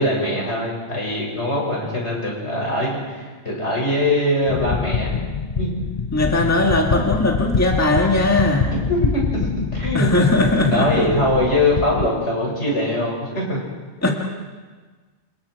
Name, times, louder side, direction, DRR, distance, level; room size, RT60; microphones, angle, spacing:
voice 1, 0.0-5.2 5.6-5.7 8.9-9.2 9.7-10.1 10.6-13.6, left 1 dB, 55° left, -3 dB, 6.9 m, -22 dB
sound 1, 4.5-12.1, left 5 dB, 35° left, 0.7 m, -25 dB
voice 2, 6.1-8.7 9.9-11.1 14.0-14.1, left 2 dB, 10° left, 1 dB, 1.7 m, -19 dB
28.0 x 27.0 x 4.8 m, 1.4 s
omnidirectional pair, 1.4 m